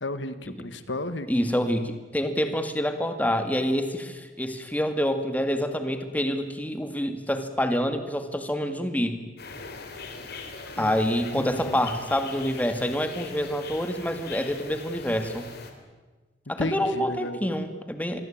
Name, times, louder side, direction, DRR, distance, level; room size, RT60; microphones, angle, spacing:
voice 1, 0.0-1.3 10.8-10.9 11.3-11.9 16.6-17.5, left 2 dB, 80° left, 12 dB, 1.9 m, -33 dB
voice 2, 1.3-9.2 10.8-15.5 16.5-18.2, equal, 10° left, 8 dB, 2.3 m, -27 dB
sound 1, 9.4-15.7, left 4 dB, 60° left, 3.9 m, -41 dB
26.5 x 22.5 x 9.0 m, 1.3 s
head